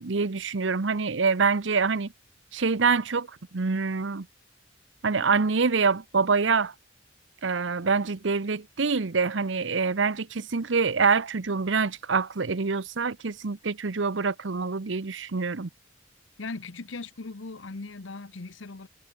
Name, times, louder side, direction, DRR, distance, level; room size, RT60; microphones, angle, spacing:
voice 1, 0.0-2.1 2.5-4.3 5.0-6.7 7.4-15.7, right 4 dB, 75° right, 0.8 m, -25 dB
voice 2, 16.4-18.9, left 3 dB, 85° left, 1.0 m, -38 dB
head